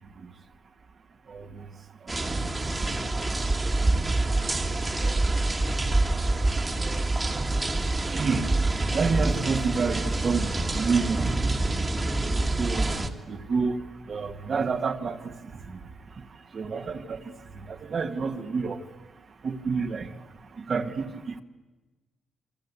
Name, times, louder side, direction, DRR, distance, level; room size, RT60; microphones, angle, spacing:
voice 1, 1.3-1.6 2.1-2.5 8.1-8.5 8.9-11.3 12.6-13.8 14.1-15.3 15.7-15.8 16.5-17.3 17.6-18.8 19.4-20.1 20.6-21.4, right 5 dB, 40° right, 1.6 m, -29 dB
sound 1, 2.1-13.1, right 2 dB, 20° right, 1.8 m, -26 dB
27.5 x 24.5 x 8.2 m
cardioid pair, 135°, 0 cm